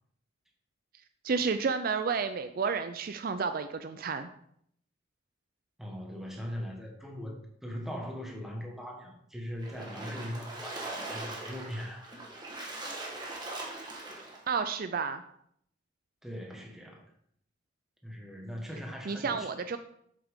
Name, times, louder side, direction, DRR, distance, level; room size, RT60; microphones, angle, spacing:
voice 1, 1.2-4.3 14.5-15.2 19.1-19.8, right 5 dB, 50° right, 9 dB, 0.4 m, -31 dB
voice 2, 5.8-12.1 16.2-17.0 18.0-19.5, equal, ahead, 0 dB, 1.5 m, -40 dB
Splash splatter, 9.6-14.5, right 2 dB, 20° right, 1.5 m, -41 dB
7.9 x 7.5 x 3.7 m, 0.69 s
head